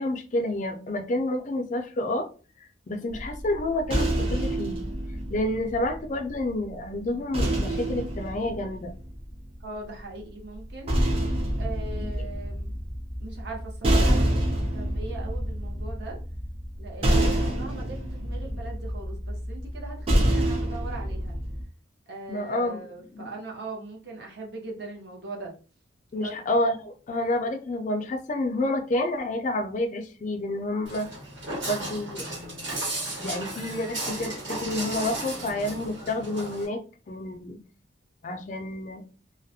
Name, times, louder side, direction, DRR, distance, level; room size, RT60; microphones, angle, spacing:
voice 1, 0.0-2.3 2.9-4.8 5.3-8.9 12.0-12.1 17.0-17.3 22.3-22.8 23.1-23.3 26.1-31.1 31.7-32.3 33.2-36.8 37.1-37.6 38.2-39.0, left 1 dB, 40° left, 6 dB, 0.4 m, -29 dB
sound 1, 3.1-6.4 7.3-9.6 10.6-21.6, right 1 dB, 30° right, 0.5 m, -27 dB
voice 2, 9.6-11.0 11.6-12.7 13.2-16.2 16.8-21.4 22.1-25.5 26.2-26.3, right 3 dB, 60° right, -1 dB, 0.8 m, -40 dB
Walk footsteps, 30.9-36.7, right 2 dB, 80° right, 1.4 m, -34 dB
2.3 x 2.0 x 2.7 m, 0.36 s
head